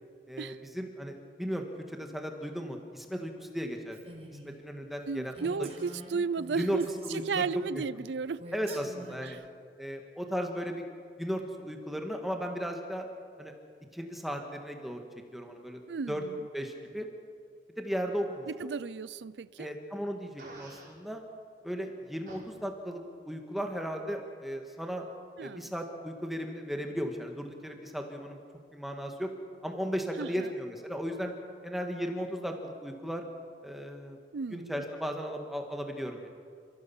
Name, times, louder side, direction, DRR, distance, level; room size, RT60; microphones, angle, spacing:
voice 1, 0.3-4.0 4.3-5.7 6.6-7.5 7.7-7.8 8.5-9.4 9.8-10.8 11.2-13.1 13.4-13.5 13.9-15.0 15.3-15.8 16.1-16.2 16.5-17.1 17.8-18.7 19.6-21.2 21.6-25.1 25.4-28.4 28.7-29.3 29.6-31.3 31.6-33.2 33.6-34.2 34.5-36.3, equal, ahead, 1.8 m, -36 dB
Female speech woman speaking, 3.9-4.5 4.9-5.0 5.3-7.6 8.4-9.3, right 1 dB, 35° right, 4.3 m, -46 dB
voice 2, 5.1-8.8 9.2-9.5 15.9-16.4 18.5-19.7 25.4-25.7 30.2-30.5 34.3-34.8, right 5 dB, 85° right, 0.5 m, -34 dB
Fart, 20.4-21.0 22.3-22.4, right 2 dB, 50° right, 5.7 m, -48 dB
29.5 x 16.0 x 7.2 m
head